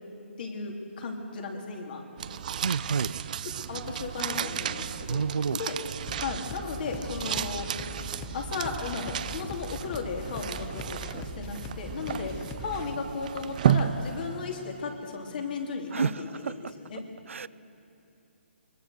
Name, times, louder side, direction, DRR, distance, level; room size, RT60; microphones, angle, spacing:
voice 1, 0.4-2.0 3.6-5.2 5.5-5.7 6.2-7.7 8.3-16.5 16.8-17.0, left 4 dB, 45° left, 2 dB, 3.1 m, -35 dB
sound 1, 2.2-14.7, right 9 dB, 40° right, 0.6 m, -33 dB
voice 2, 2.3-3.2 5.1-5.6 15.9-16.7 17.3-17.5, right 6 dB, 85° right, 17 dB, 0.6 m, -30 dB
sound 2, 6.1-12.9, left 8 dB, 15° left, 0.4 m, -42 dB
22.5 x 21.5 x 6.7 m, 2.9 s
hypercardioid pair, 165°, 7 cm